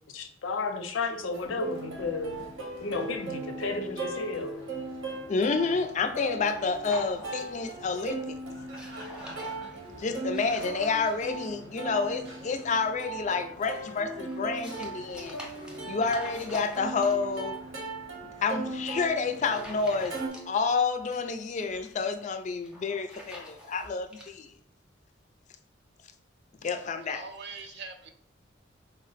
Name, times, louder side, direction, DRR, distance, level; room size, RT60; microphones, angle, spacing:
voice 1, 0.1-2.3 2.8-4.5, left 3 dB, 90° left, 0.5 m, -32 dB
Plucked string instrument, 1.3-20.3, right 2 dB, 90° right, 1.0 m, -38 dB
voice 2, 5.3-8.3 10.0-15.4 15.9-17.6 18.4-20.2 20.5-24.5 26.6-27.2, left 4 dB, 40° left, 0.3 m, -29 dB
sound 1, 6.9-7.8 8.1-8.3 8.6-11.5 13.4-17.4 18.8-19.0 19.4-20.7 20.9-21.9 22.5-24.3, left 1 dB, 5° right, 0.7 m, -47 dB
voice 3, 27.0-28.1, right 4 dB, 60° right, 0.5 m, -42 dB
4.0 x 2.1 x 3.9 m
head